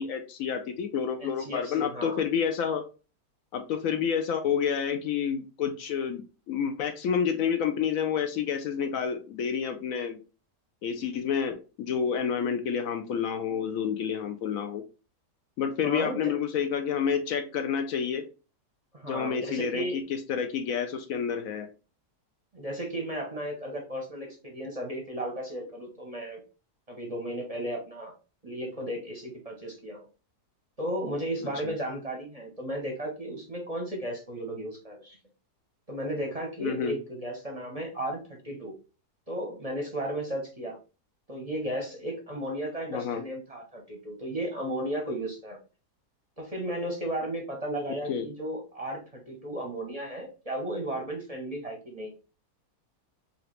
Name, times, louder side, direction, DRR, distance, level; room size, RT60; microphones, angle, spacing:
voice 1, 0.0-2.8 3.5-10.2 10.8-14.8 15.6-18.2 19.1-21.7 31.6-31.7 36.6-37.0 42.9-43.2 48.1-48.3, left 7 dB, 70° left, 7 dB, 0.9 m, -29 dB
voice 2, 1.2-2.2 15.8-16.3 18.9-20.0 22.5-26.4 26.9-28.1 28.4-30.1 30.8-35.2 35.9-38.2 38.4-38.7 39.3-40.8 41.3-45.6 46.4-52.1, right 1 dB, 30° right, 0 dB, 0.7 m, -34 dB
3.8 x 2.9 x 3.1 m, 0.32 s
omnidirectional pair, 1.7 m